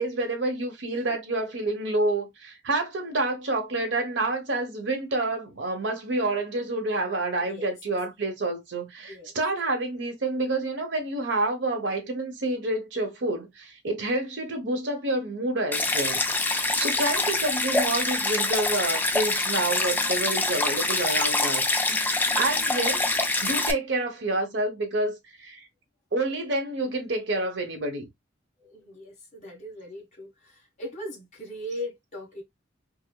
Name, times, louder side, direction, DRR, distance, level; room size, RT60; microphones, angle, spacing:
voice 1, 0.0-21.6 21.9-23.1 23.4-25.7 26.1-28.1, right 2 dB, 65° right, 0.9 m, -28 dB
voice 2, 7.4-7.7 9.0-9.3 28.6-32.4, left 1 dB, 35° left, 1.5 m, -39 dB
Stream, 15.7-23.7, left 2 dB, 10° left, 0.3 m, -25 dB
4.9 x 2.1 x 2.3 m
head